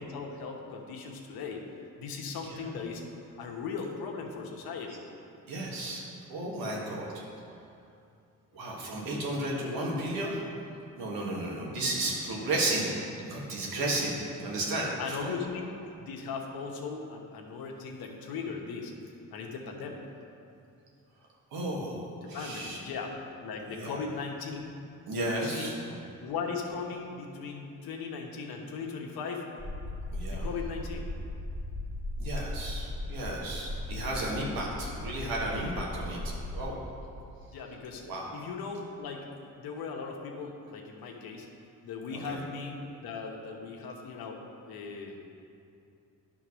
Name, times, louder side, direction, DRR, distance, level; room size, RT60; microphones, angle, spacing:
voice 1, 0.0-1.6 2.0-5.0 14.6-14.7 15.0-15.7 16.0-18.9 19.3-20.0 22.2-24.7 25.2-25.7 26.2-29.5 30.3-31.1 37.5-38.0 38.3-39.3 39.6-41.5 41.8-44.4 44.7-45.2, left 5 dB, 80° left, 1 dB, 1.1 m, -38 dB
voice 2, 5.5-6.0 6.3-7.2 8.5-10.3 11.0-15.3 21.5-22.8 23.7-24.0 25.1-26.0 30.1-30.5 32.2-36.8 38.0-38.3 42.1-42.4, right 1 dB, 85° right, -3 dB, 1.8 m, -33 dB
sound 1, 29.6-36.6, left 1 dB, 25° right, 1.1 m, -37 dB
10.0 x 3.9 x 6.2 m, 2.6 s
cardioid pair, 80°, 35 cm